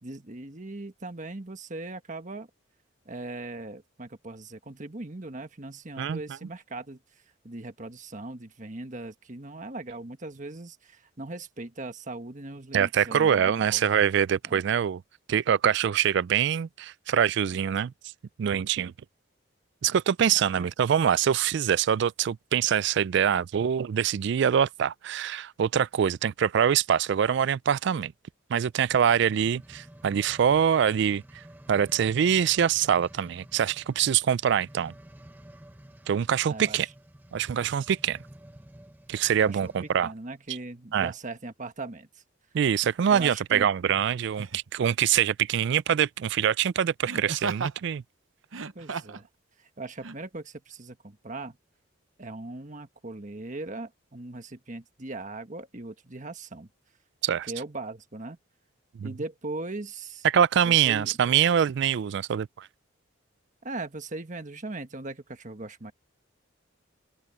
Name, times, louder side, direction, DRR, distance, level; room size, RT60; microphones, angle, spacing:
voice 1, 0.0-2.5 3.0-13.8 14.4-14.6 20.5-20.7 36.5-36.9 39.5-39.7 40.0-42.2 43.1-43.7 48.7-49.3 49.6-51.6 52.2-56.7 57.3-58.4 59.0-60.2 60.6-61.1 63.6-65.9, right 2 dB, 40° right, 1.5 m, -39 dB
voice 2, 12.7-15.0 15.3-17.9 18.4-18.9 19.8-28.1 28.5-31.2 31.7-34.9 36.1-36.9 37.3-38.2 39.1-40.1 40.9-41.1 42.5-48.0 57.2-57.5 59.0-59.1 60.2-62.7, right 8 dB, 60° right, 0.3 m, -24 dB
sound 1, 28.7-40.1 40.7-40.8, right 1 dB, 10° right, 1.1 m, -50 dB
Laughter, 42.8-43.0 44.3-44.7 47.0-47.8 48.4-49.3 50.0-50.1, right 4 dB, 80° right, 0.8 m, -35 dB
open air
head